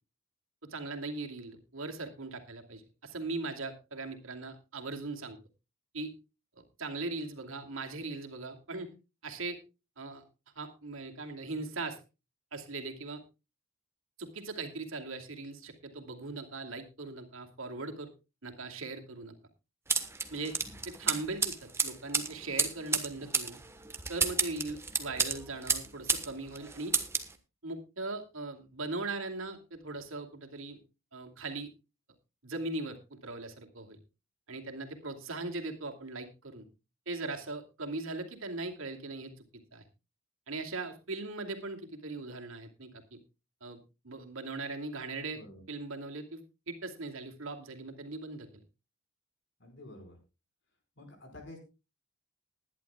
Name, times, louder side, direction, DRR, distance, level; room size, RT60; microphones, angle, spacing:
voice 1, 0.7-5.4 5.9-6.1 6.6-8.9 9.2-9.6 10.0-10.2 10.6-12.0 12.5-13.2 14.2-18.1 18.4-19.3 20.3-20.6 20.8-23.6 24.1-26.9 27.6-30.8 31.1-31.7 32.4-34.0 34.5-36.6 37.1-39.3 39.7-39.8 40.5-43.2 43.6-43.8 44.0-45.4 45.7-46.4 46.7-48.5, right 3 dB, 70° right, 4 dB, 2.6 m, -39 dB
sound 1, 19.9-26.3 26.5-27.3, right 4 dB, 10° right, 1.2 m, -31 dB
voice 2, 49.6-50.2 51.0-51.6, left 1 dB, 55° left, 5 dB, 5.1 m, -49 dB
20.5 x 11.0 x 2.3 m, 0.28 s
head